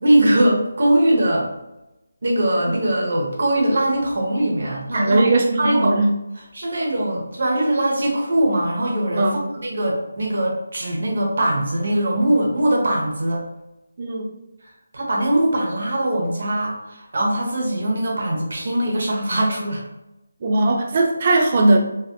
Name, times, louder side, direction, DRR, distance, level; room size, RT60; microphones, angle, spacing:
voice 1, 0.0-1.5 2.2-5.2 5.6-6.0 6.5-13.4 14.9-19.8, right 1 dB, 60° right, -1 dB, 0.9 m, -21 dB
voice 2, 4.9-6.1 9.2-9.4 14.0-14.3 20.4-21.8, right 2 dB, 30° right, 2 dB, 0.3 m, -18 dB
3.3 x 2.5 x 2.2 m, 0.94 s
figure-of-eight pair, 170°, 0 cm